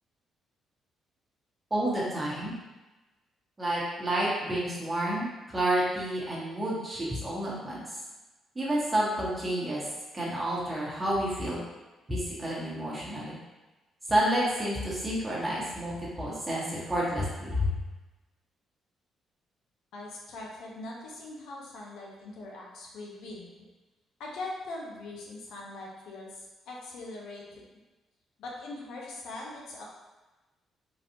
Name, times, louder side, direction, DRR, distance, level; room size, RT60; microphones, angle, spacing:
voice 1, 1.7-2.5 3.6-5.3 5.5-7.8 8.5-9.8 10.1-11.6 12.1-13.4 14.1-17.7, right 1 dB, 20° right, -6 dB, 1.3 m, -29 dB
voice 2, 19.9-23.7 24.2-27.6 28.4-29.8, left 2 dB, 80° left, -2 dB, 0.7 m, -41 dB
3.9 x 2.5 x 2.8 m, 1.1 s
cardioid pair, 90°, 0 cm